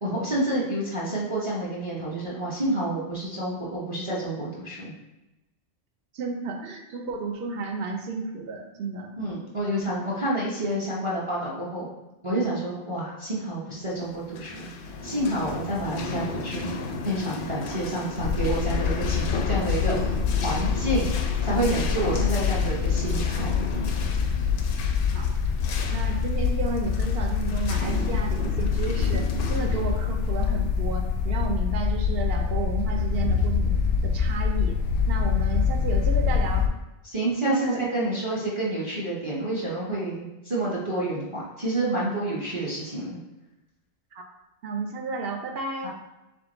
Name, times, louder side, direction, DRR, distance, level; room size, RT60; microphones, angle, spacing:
voice 1, 0.0-4.9 9.2-11.9 12.2-14.7 15.0-16.7 17.0-20.1 20.4-21.1 21.4-23.5 37.0-43.2 45.8-45.9, right 1 dB, 30° right, -6 dB, 0.7 m, -28 dB
voice 2, 6.1-9.1 16.1-16.2 25.1-25.3 25.9-34.8 35.1-36.7 37.4-37.9 44.1-44.2 44.6-45.9, right 4 dB, 60° right, 2 dB, 0.7 m, -32 dB
sound 1, 14.2-31.6, left 3 dB, 60° left, 0.6 m, -34 dB
sound 2, 18.2-36.7, left 6 dB, 90° left, 1.0 m, -25 dB
3.6 x 3.4 x 3.8 m, 0.98 s
omnidirectional pair, 1.3 m